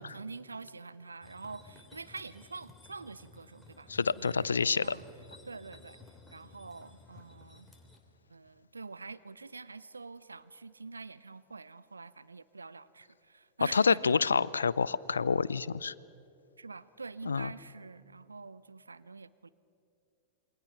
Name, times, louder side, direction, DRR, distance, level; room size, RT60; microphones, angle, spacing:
voice 1, 0.0-4.5 4.8-5.0 5.4-6.0 6.3-7.7 8.3-14.2 16.6-19.5, right 4 dB, 85° right, 16 dB, 0.7 m, -46 dB
sound 1, 1.2-8.0, left 3 dB, 5° left, 3.3 m, -56 dB
voice 2, 3.9-4.9 13.7-15.9 17.3-17.5, left 5 dB, 80° left, 21 dB, 0.5 m, -27 dB
28.0 x 23.0 x 5.9 m, 2.6 s
figure-of-eight pair, 95°, 0 cm